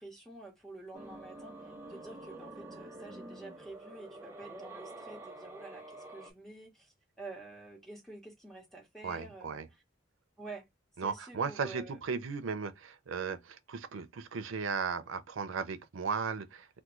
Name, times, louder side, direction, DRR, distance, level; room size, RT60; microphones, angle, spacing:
voice 1, 0.0-9.6 10.4-10.7 11.0-12.0, right 2 dB, ahead, 1.1 m, -49 dB
sound 1, 0.9-6.3, right 2 dB, 15° right, 0.6 m, -47 dB
voice 2, 9.0-9.7 11.0-16.8, right 5 dB, 90° right, 0.6 m, -36 dB
3.5 x 2.2 x 3.0 m
head